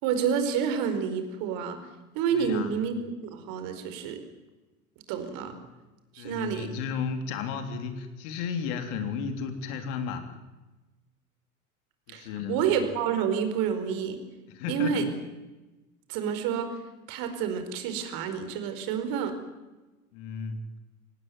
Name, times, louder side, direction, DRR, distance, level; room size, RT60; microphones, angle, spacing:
voice 1, 0.0-1.8 2.1-4.2 5.1-5.5 6.1-6.7 12.1-14.2 14.7-15.1 16.1-16.8 17.1-19.4, right 7 dB, 55° right, 8 dB, 4.8 m, -29 dB
voice 2, 2.3-2.7 6.2-10.3 12.1-12.6 14.5-15.1 20.1-20.6, left 6 dB, 60° left, 7 dB, 3.6 m, -33 dB
25.5 x 18.5 x 9.4 m, 1.1 s
figure-of-eight pair, 75°, 43 cm